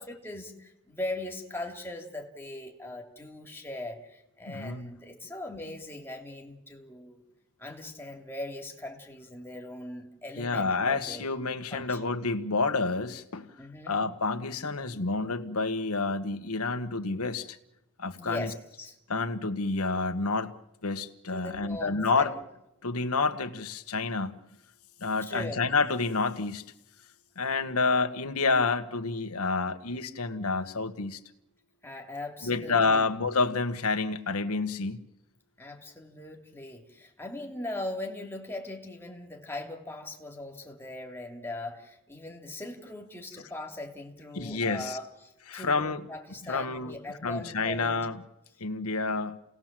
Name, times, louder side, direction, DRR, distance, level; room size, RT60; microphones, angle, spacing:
voice 1, 0.0-7.2 7.6-11.3 11.7-12.1 13.6-14.1 18.2-19.0 21.3-22.4 25.2-25.6 31.8-33.1 35.6-48.0, left 1 dB, 10° left, 2 dB, 3.0 m, -40 dB
voice 2, 4.5-4.9 10.4-13.5 13.9-17.6 18.0-18.5 19.1-20.5 20.8-22.3 22.8-24.3 25.0-26.6 27.4-31.2 32.4-35.0 44.3-45.0 45.5-46.0 46.5-47.0 47.2-48.2 48.6-49.4, left 3 dB, 85° left, 9 dB, 1.4 m, -29 dB
30.0 x 18.5 x 7.6 m, 0.90 s
head